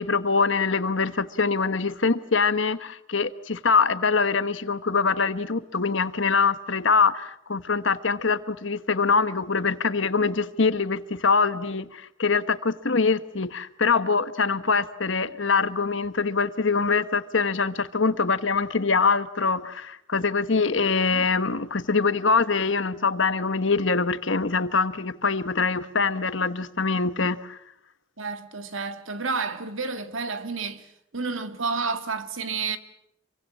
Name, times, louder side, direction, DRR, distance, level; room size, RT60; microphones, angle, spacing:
voice 1, 0.0-27.6, left 4 dB, 65° left, 1.2 m, -24 dB
voice 2, 28.2-32.8, right 4 dB, 75° right, 2.1 m, -30 dB
27.0 x 24.0 x 7.5 m
head